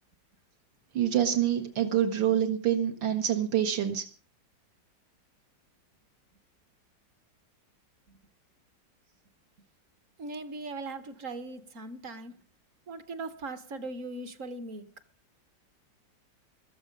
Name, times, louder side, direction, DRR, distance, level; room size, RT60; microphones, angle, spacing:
voice 1, 0.9-4.1, right 10 dB, 85° right, 2.1 m, -26 dB
voice 2, 10.2-12.3 12.9-14.9, right 2 dB, 50° right, 1.1 m, -39 dB
14.5 x 14.0 x 5.1 m
omnidirectional pair, 2.0 m